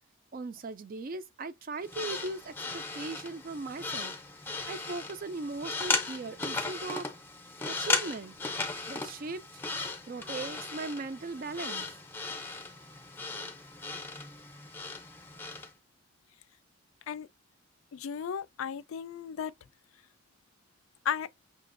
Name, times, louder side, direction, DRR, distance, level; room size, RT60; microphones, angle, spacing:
voice 1, 0.3-4.2 4.4-7.1 7.7-8.3 8.9-9.5 10.1-11.9, right 3 dB, 45° right, 0.4 m, -39 dB
sound 1, 1.8-15.7, left 3 dB, 10° left, 0.6 m, -36 dB
voice 2, 17.9-19.5 21.1-21.3, left 8 dB, 80° left, 0.4 m, -34 dB
5.8 x 2.5 x 2.5 m
head